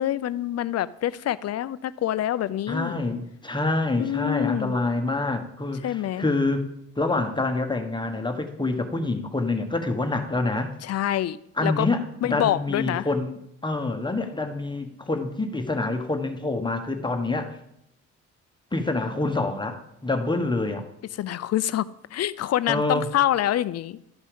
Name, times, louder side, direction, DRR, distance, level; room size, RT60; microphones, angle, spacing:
voice 1, 0.0-3.0 4.0-4.8 5.8-6.3 10.9-11.9 12.2-13.1 21.2-24.0, left 12 dB, 55° left, 16 dB, 0.5 m, -26 dB
voice 2, 2.7-6.6 7.0-10.7 11.6-17.5 18.7-20.9 22.7-23.1, left 2 dB, 15° left, 5 dB, 1.2 m, -26 dB
12.5 x 5.4 x 5.2 m, 0.76 s
cardioid pair, 90°, 30 cm